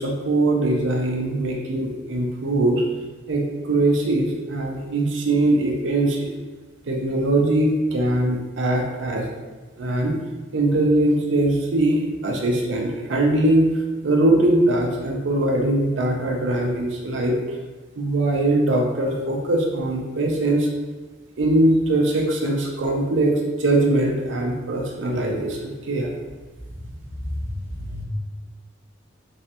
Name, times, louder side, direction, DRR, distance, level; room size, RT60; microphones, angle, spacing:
voice 1, 0.0-2.8 3.3-6.3 6.9-9.3 9.8-10.2 10.5-17.6 18.0-20.7 21.4-26.1, right 1 dB, 75° right, 0 dB, 0.5 m, -21 dB
voice 2, 26.6-28.0, left 1 dB, 15° right, -6 dB, 0.9 m, -32 dB
3.4 x 3.1 x 2.8 m, 1.3 s
head